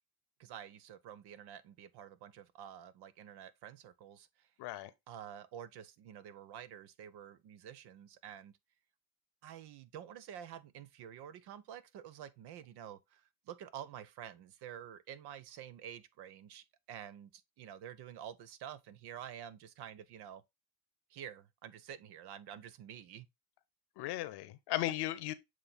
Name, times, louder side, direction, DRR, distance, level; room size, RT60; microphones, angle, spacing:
voice 1, 0.4-4.5 5.1-8.5 9.4-13.2 13.5-17.3 17.6-20.4 21.1-23.3, right 10 dB, 65° right, 0.8 m, -49 dB
voice 2, 4.6-4.9 24.0-25.3, left 15 dB, 70° left, 0.9 m, -36 dB
7.4 x 3.1 x 4.0 m
hypercardioid pair, 60°, 41 cm